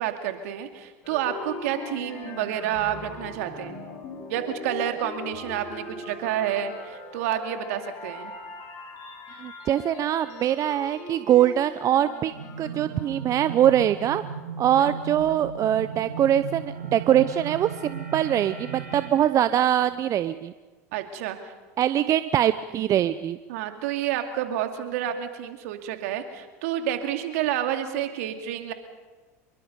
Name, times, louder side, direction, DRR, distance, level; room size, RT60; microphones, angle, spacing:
voice 1, 0.0-3.9 4.3-8.3 14.8-14.9 20.9-21.5 23.5-28.7, right 11 dB, 70° right, 6 dB, 2.4 m, -29 dB
sound 1, 1.0-16.8 17.2-20.0, left 4 dB, 50° left, 5.5 m, -41 dB
voice 2, 9.4-14.2 14.6-20.5 21.8-23.4, right 11 dB, 40° right, 13 dB, 0.7 m, -23 dB
sound 2, 12.3-19.1, right 7 dB, 85° right, 5.3 m, -36 dB
25.5 x 23.0 x 5.4 m, 1.3 s
hypercardioid pair, 85°, 8 cm